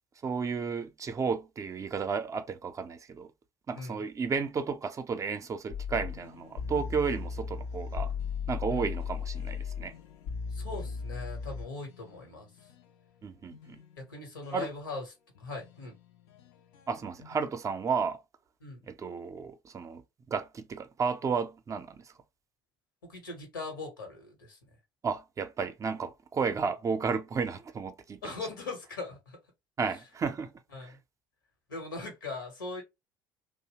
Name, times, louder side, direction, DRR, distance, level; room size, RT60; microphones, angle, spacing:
voice 1, 0.2-3.3 3.7-8.1 8.5-9.9 13.2-13.8 14.5-14.7 16.9-18.2 18.9-20.0 20.3-22.1 25.0-28.2 29.8-30.5 30.8-30.9, right 5 dB, 30° right, 0.5 m, -33 dB
sound 1, 5.7-12.9 13.5-14.7 15.4-17.5, left 6 dB, 60° left, 0.4 m, -38 dB
voice 2, 10.5-12.5 14.0-15.0 15.4-16.0 18.6-18.8 23.0-24.6 28.2-29.4 30.7-31.0 31.7-32.8, left 3 dB, 80° left, 0.9 m, -40 dB
2.7 x 2.0 x 2.9 m
figure-of-eight pair, 55°, 11 cm